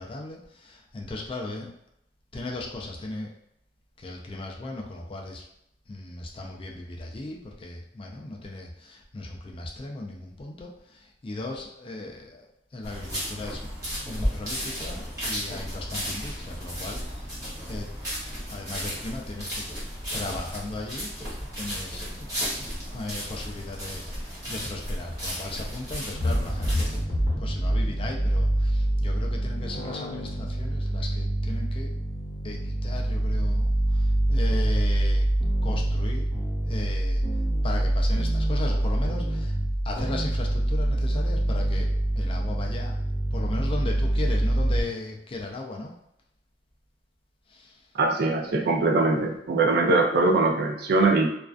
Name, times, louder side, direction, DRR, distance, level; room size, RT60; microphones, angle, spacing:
voice 1, 0.0-1.7 2.3-3.3 4.0-5.5 5.9-17.3 17.7-17.9 18.5-19.6 20.1-26.9 27.4-31.9 32.4-35.3 35.6-36.3 36.6-37.2 37.6-39.6 39.8-41.9 42.2-43.0 43.3-45.9 47.5-47.8, left 2 dB, 30° left, 1 dB, 0.4 m, -37 dB
sound 1, 12.8-27.0, equal, 20° right, 0.9 m, -34 dB
sound 2, 26.1-44.8, right 1 dB, 50° left, 0.8 m, -25 dB
voice 2, 48.0-51.3, right 3 dB, 65° right, 2 dB, 0.4 m, -22 dB
2.4 x 2.2 x 2.3 m, 0.79 s
head